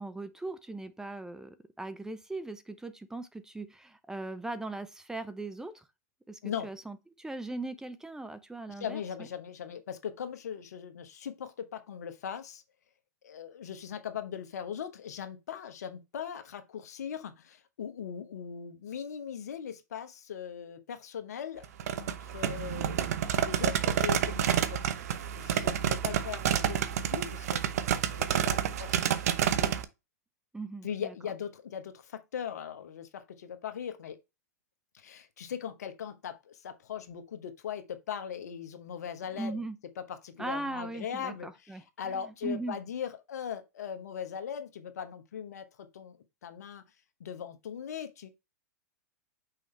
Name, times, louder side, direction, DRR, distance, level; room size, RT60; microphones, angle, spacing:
voice 1, 0.0-5.9 6.3-9.3 30.5-31.1 39.3-39.8 40.4-42.8, right 2 dB, 5° right, 0.7 m, -39 dB
voice 2, 8.8-12.6 13.2-21.6 22.0-27.6 28.1-29.1 29.5-29.7 30.8-34.2 34.9-39.6 40.0-46.2 46.4-46.8 47.2-48.3, left 8 dB, 70° left, 1.1 m, -39 dB
sound 1, 21.6-29.8, right 9 dB, 65° right, 0.8 m, -29 dB
6.2 x 4.9 x 3.2 m
hypercardioid pair, 105°, 9 cm